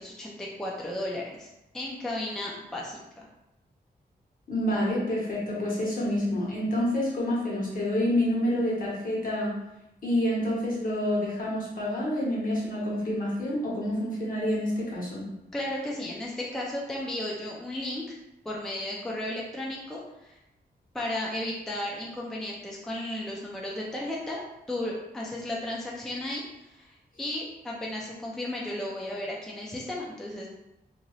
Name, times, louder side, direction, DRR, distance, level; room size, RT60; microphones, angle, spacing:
voice 1, 0.0-3.3 15.5-18.1 18.4-20.4 20.9-24.4 24.7-30.5, left 1 dB, 5° left, -3 dB, 0.3 m, -34 dB
voice 2, 4.5-9.6 10.0-15.3, left 1 dB, 55° left, -5 dB, 1.1 m, -28 dB
2.8 x 2.6 x 3.1 m, 0.90 s
wide cardioid pair, 170°, 17 cm